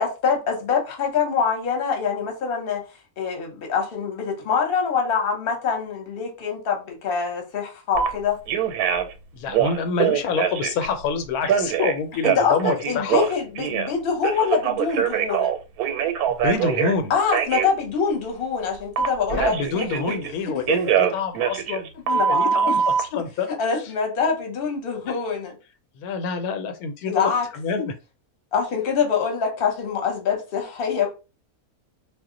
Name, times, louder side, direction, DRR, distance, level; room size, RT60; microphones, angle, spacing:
voice 1, 0.0-2.8 3.2-8.4 12.2-12.6 12.9-15.5 17.1-20.2 22.1-22.8 23.6-25.5 27.1-27.5 28.5-31.1, left 6 dB, 45° left, 0.9 m, -25 dB
Telephone, 7.9-8.1 8.5-9.1 9.5-10.9 11.4-13.9 14.2-16.9 17.3-17.7 19.0-20.3 20.7-23.0, right 8 dB, 90° right, 1.1 m, -23 dB
voice 2, 9.3-13.2 16.3-17.1 19.3-23.5 26.0-27.9, left 5 dB, 85° left, 1.1 m, -27 dB
2.4 x 2.0 x 3.7 m
omnidirectional pair, 1.5 m